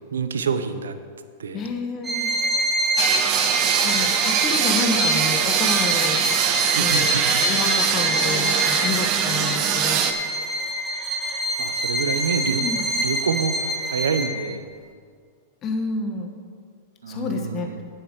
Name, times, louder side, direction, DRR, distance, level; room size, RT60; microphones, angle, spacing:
voice 1, 0.1-1.0 1.4-1.6 6.6-7.4 11.6-12.6 13.0-14.6 17.0-17.8, right 6 dB, 90° right, 10 dB, 0.7 m, -27 dB
voice 2, 1.5-2.3 3.8-6.2 6.8-10.1 12.6-12.8 15.6-16.4 17.1-17.7, left 4 dB, 35° left, 4 dB, 1.3 m, -29 dB
Bowed string instrument, 2.0-14.5, right 1 dB, 15° right, 1.4 m, -25 dB
sound 1, 3.0-10.1, right 9 dB, 45° right, 0.9 m, -23 dB
9.2 x 7.5 x 6.6 m, 2.1 s
hypercardioid pair, 115°, 0 cm